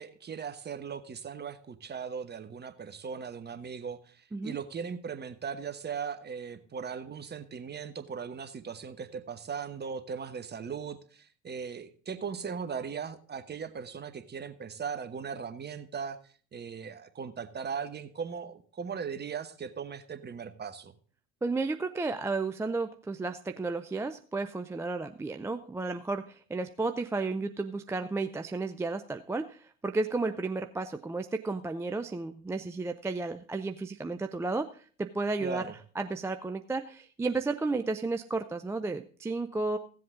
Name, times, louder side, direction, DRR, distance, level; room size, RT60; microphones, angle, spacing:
voice 1, 0.0-16.2 16.5-20.9 35.4-35.7, right 6 dB, 25° right, 10 dB, 1.1 m, -38 dB
voice 2, 21.4-35.6 36.0-39.8, right 3 dB, 5° right, 7 dB, 0.4 m, -33 dB
15.5 x 7.7 x 3.7 m, 0.43 s
hypercardioid pair, 70°, 41 cm